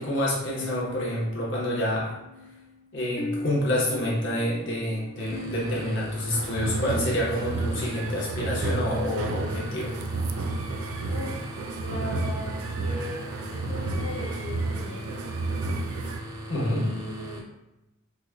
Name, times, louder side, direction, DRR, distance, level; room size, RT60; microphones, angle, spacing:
voice 1, 0.0-2.1 2.9-9.9 16.5-16.8, left 1 dB, 65° left, -6 dB, 1.1 m, -28 dB
sound 1, 0.6-7.7, left 3 dB, 50° left, 0.4 m, -41 dB
sound 2, 5.2-17.4, right 1 dB, 15° right, 0.4 m, -39 dB
sound 3, 6.3-16.2, right 3 dB, 80° right, 0.3 m, -31 dB
voice 2, 11.1-11.5 11.8-15.1 16.6-17.4, left 2 dB, 85° left, -7 dB, 0.7 m, -38 dB
4.9 x 2.2 x 2.3 m, 0.95 s
head